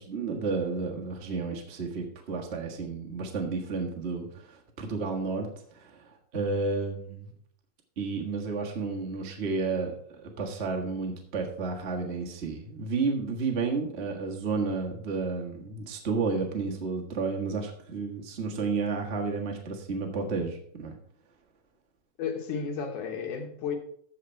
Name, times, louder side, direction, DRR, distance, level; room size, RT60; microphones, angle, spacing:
voice 1, 0.0-7.3 8.0-9.9 10.2-20.9, right 4 dB, 55° right, 1 dB, 0.7 m, -31 dB
voice 2, 22.2-23.8, left 6 dB, 70° left, 4 dB, 2.5 m, -33 dB
14.0 x 4.9 x 4.5 m, 0.65 s
omnidirectional pair, 3.8 m